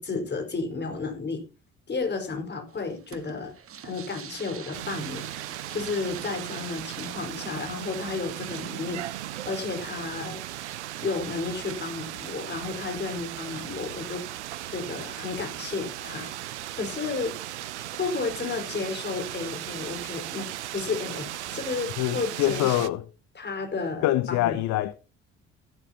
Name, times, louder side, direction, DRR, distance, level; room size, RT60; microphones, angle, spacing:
voice 1, 0.0-1.4 1.9-3.5 3.8-5.2 5.7-10.4 11.0-14.2 14.7-17.3 18.0-20.5 20.7-22.9 23.3-24.6, left 4 dB, 30° left, 4.9 m, -32 dB
sound 1, 2.7-12.0, right 8 dB, 40° right, 1.5 m, -45 dB
sound 2, 4.7-22.9, right 14 dB, 75° right, 0.7 m, -37 dB
voice 2, 22.0-23.0 24.0-24.9, left 14 dB, 50° left, 0.9 m, -24 dB
15.5 x 12.0 x 2.9 m
figure-of-eight pair, 50°, 35 cm